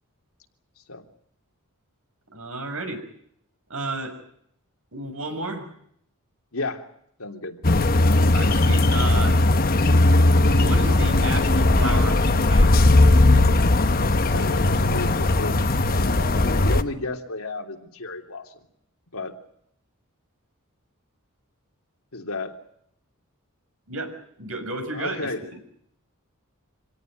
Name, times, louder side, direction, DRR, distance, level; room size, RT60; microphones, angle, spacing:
voice 1, 2.3-3.0 3.7-4.2 4.9-5.6 8.3-9.4 10.6-12.8 23.9-25.6, right 2 dB, 65° right, 5 dB, 6.5 m, -32 dB
voice 2, 6.5-6.9 7.2-7.6 14.3-15.6 16.4-18.6 19.1-19.3 22.1-22.6 24.9-25.5, left 2 dB, 75° left, 3 dB, 3.2 m, -32 dB
sound 1, 7.6-16.8, left 2 dB, 40° left, 1.1 m, -18 dB
26.5 x 17.5 x 9.4 m, 0.71 s
head